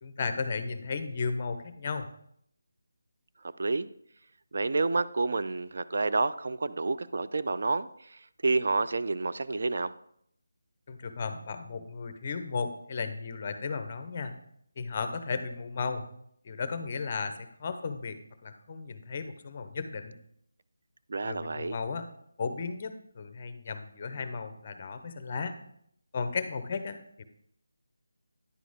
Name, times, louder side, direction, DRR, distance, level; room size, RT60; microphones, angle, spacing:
voice 1, 0.0-2.1 10.9-14.3 14.8-16.0 16.4-18.2 18.4-20.2 21.2-22.1 22.4-25.6 26.1-27.2, left 4 dB, 30° left, 10 dB, 0.6 m, -35 dB
voice 2, 4.5-9.9 21.1-21.8, right 3 dB, 50° right, 12 dB, 0.3 m, -29 dB
10.0 x 4.1 x 5.0 m, 0.70 s
figure-of-eight pair, 175°, 0 cm